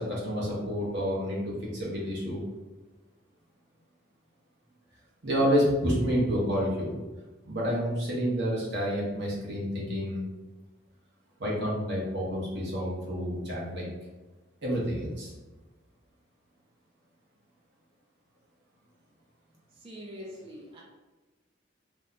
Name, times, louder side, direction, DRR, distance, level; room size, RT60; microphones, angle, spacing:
voice 1, 0.0-2.4 5.2-6.9 7.4-10.3 11.4-13.8 14.6-15.3, equal, 60° right, -5 dB, 1.0 m, -29 dB
voice 2, 19.7-20.8, equal, 30° right, -4 dB, 0.4 m, -43 dB
2.9 x 2.2 x 3.8 m, 1.2 s
head